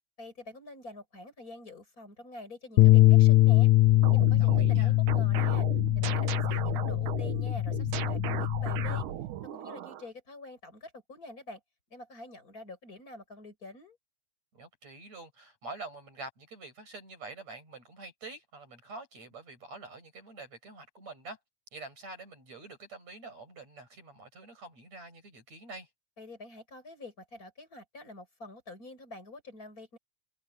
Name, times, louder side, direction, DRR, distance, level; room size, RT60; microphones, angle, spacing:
voice 1, 0.2-3.7 4.1-5.7 6.0-9.1 9.5-11.6 11.9-14.0 26.2-30.0, left 2 dB, 25° left, 6.1 m, -46 dB
sound 1, 2.8-9.0, left 17 dB, 75° left, 2.1 m, -23 dB
sound 2, 3.9-10.1, right 10 dB, 85° right, 2.8 m, -37 dB
voice 2, 4.4-5.0 14.5-21.4 21.7-25.9, right 3 dB, 60° right, 9.4 m, -46 dB
omnidirectional pair, 3.4 m